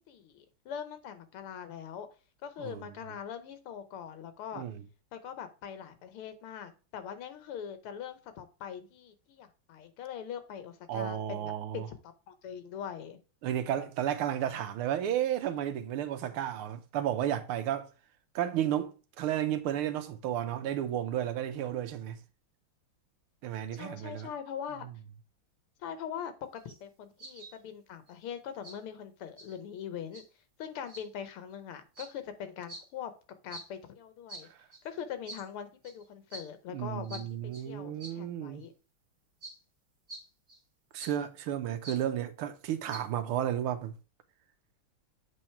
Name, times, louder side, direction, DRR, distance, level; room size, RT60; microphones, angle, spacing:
voice 1, 0.1-2.1 2.4-4.6 5.1-11.5 11.9-13.2 23.8-24.9 25.8-30.3 30.6-33.1 33.4-34.5 34.8-38.7, left 8 dB, 85° left, 1.9 m, -42 dB
voice 2, 2.6-2.9 4.6-4.8 10.9-11.9 13.4-17.9 18.3-18.9 19.2-22.2 23.4-24.3 34.5-34.6 36.7-38.6 40.9-43.9, right 11 dB, 85° right, 1.7 m, -32 dB
sound 1, 26.5-26.8 27.2-27.6 28.1-28.2 28.6-28.8 29.4-29.6 30.1-30.2 30.9-31.1 32.0-32.1 32.7-32.8 33.5-33.7 34.3-34.4 34.7-34.9 35.3-35.5 35.8-36.0 36.3-36.5 37.0-37.2 37.5-37.6 38.0-38.1 38.6-38.7 39.4-39.6 40.1-40.2 40.5-40.6 40.9-41.1 41.8-42.0 42.9-43.0, right 2 dB, 30° right, 1.8 m, -46 dB
7.9 x 3.9 x 4.4 m
omnidirectional pair, 2.3 m